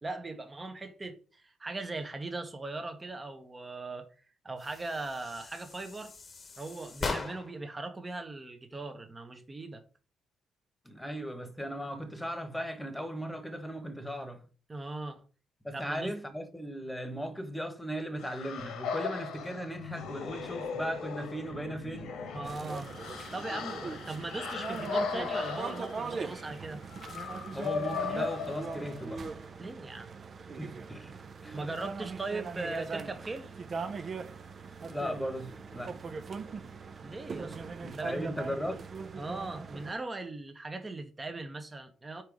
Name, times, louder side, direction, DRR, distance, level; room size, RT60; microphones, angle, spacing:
voice 1, 0.0-4.1 4.4-6.1 6.6-9.8 14.7-15.2 15.7-16.1 22.3-22.9 23.3-26.8 29.6-30.1 31.5-33.5 36.6-37.6 37.9-38.3 39.2-42.2, right 2 dB, 25° right, 1.1 m, -39 dB
sound 1, 4.6-7.7, left 4 dB, 40° left, 1.1 m, -39 dB
voice 2, 10.8-14.4 15.6-22.5 27.5-29.2 30.5-31.1 31.4-31.6 34.9-36.0 37.3-37.4 37.8-38.8, equal, 5° left, 1.4 m, -37 dB
sound 2, 18.2-29.2, left 5 dB, 85° left, 1.4 m, -37 dB
sound 3, 22.4-39.9, right 5 dB, 45° right, 0.7 m, -41 dB
4.7 x 4.5 x 5.1 m
cardioid pair, 90°, 0 cm